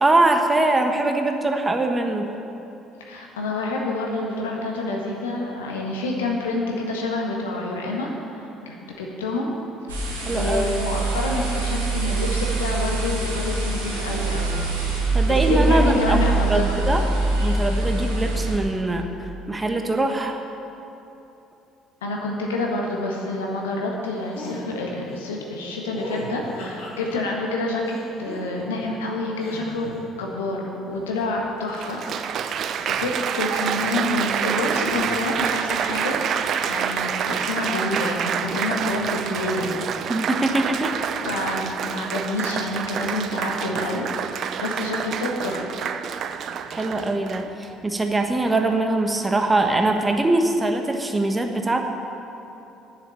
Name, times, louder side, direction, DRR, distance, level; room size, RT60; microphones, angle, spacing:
voice 1, 0.0-2.3 10.2-10.7 15.1-16.2 16.5-17.0 17.3-19.1 19.5-20.4 40.1-40.9 46.7-51.8, right 2 dB, 20° right, 4 dB, 1.3 m, -22 dB
voice 2, 3.0-9.5 9.9-10.0 10.3-14.6 15.3-16.8 22.0-36.2 36.7-39.7 41.3-45.8, left 2 dB, 75° left, -1 dB, 1.6 m, -28 dB
sound 1, 9.9-18.5, right 2 dB, 80° right, 2.1 m, -24 dB
sound 2, 24.3-24.6 25.9-27.2 27.8-28.8 29.4-29.9, left 1 dB, 55° left, 3.4 m, -36 dB
Applause, 31.0-31.1 31.7-47.7 48.4-48.7, right 8 dB, 50° right, 0.5 m, -27 dB
9.7 x 7.4 x 9.0 m, 2.9 s
figure-of-eight pair, 55°, 0 cm